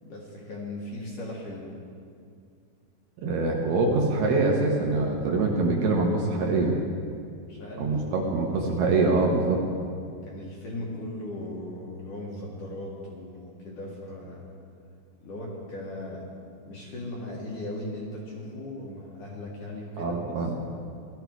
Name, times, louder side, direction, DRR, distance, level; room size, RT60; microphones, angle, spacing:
voice 1, 0.0-1.7 7.5-8.2 8.8-9.0 10.2-14.5 15.2-16.2 16.6-20.2 20.7-20.8, left 1 dB, 55° left, -4 dB, 2.6 m, -38 dB
voice 2, 3.2-6.7 7.8-9.6 20.0-20.5, right 3 dB, 65° right, -1 dB, 2.9 m, -24 dB
18.0 x 12.5 x 4.7 m, 2.3 s
omnidirectional pair, 5.4 m